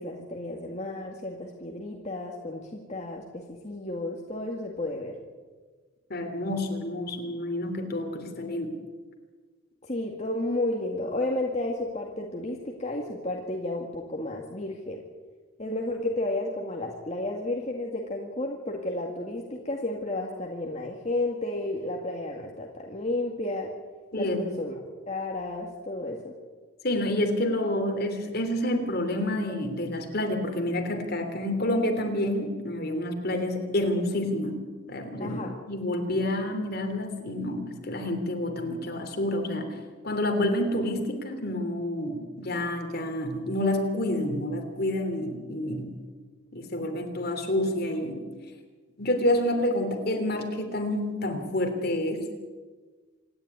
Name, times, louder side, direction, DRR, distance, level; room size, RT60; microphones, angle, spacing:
voice 1, 0.0-5.1 9.9-15.0 15.6-23.7 24.2-24.8 25.1-26.3 35.2-35.5, left 2 dB, 30° left, 0 dB, 2.0 m, -32 dB
voice 2, 6.1-8.8 24.1-24.4 26.8-35.4 35.7-39.7 40.0-45.9 46.5-48.2 49.0-52.3, left 1 dB, 50° left, 5 dB, 3.2 m, -28 dB
27.0 x 11.0 x 9.7 m, 1.4 s
head